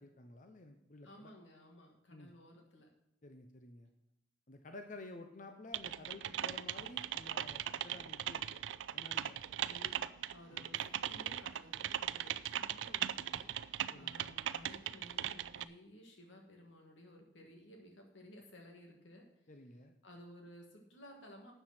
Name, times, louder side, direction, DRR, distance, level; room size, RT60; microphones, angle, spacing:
voice 1, 0.0-1.3 2.1-2.3 3.2-3.9 4.5-8.6 8.9-9.4 10.5-10.7 13.9-14.3 19.5-19.9, left 2 dB, 45° left, 6 dB, 0.8 m, -52 dB
voice 2, 1.0-2.9 6.8-6.9 9.6-19.3 20.0-21.5, left 1 dB, 90° left, 2 dB, 2.3 m, -56 dB
Typing, 5.7-15.6, right 10 dB, 80° right, 0.4 m, -39 dB
12.5 x 8.0 x 4.4 m, 0.81 s
head